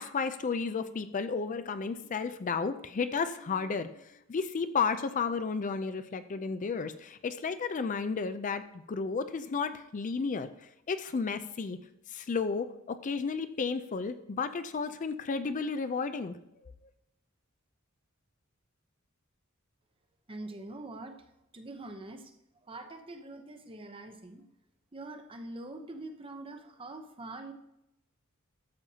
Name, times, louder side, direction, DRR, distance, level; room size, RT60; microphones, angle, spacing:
voice 1, 0.0-11.8 12.1-16.4, left 5 dB, 40° left, 11 dB, 0.4 m, -33 dB
voice 2, 20.3-21.2 21.5-22.3 22.6-24.5 24.9-27.5, right 2 dB, 25° right, 6 dB, 0.7 m, -44 dB
13.0 x 7.0 x 2.8 m, 0.82 s
head